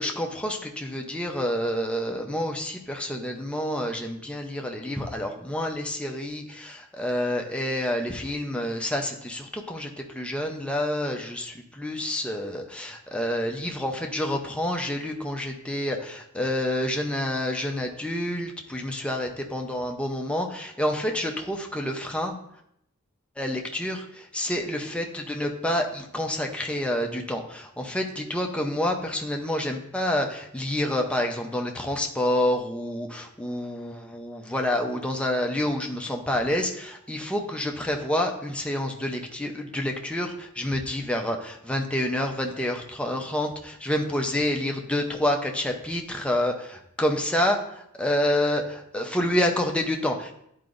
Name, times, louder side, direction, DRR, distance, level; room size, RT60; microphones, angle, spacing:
voice 1, 0.0-22.4 23.4-50.3, left 1 dB, 5° left, 2 dB, 0.7 m, -28 dB
11.0 x 4.8 x 2.6 m, 0.74 s
head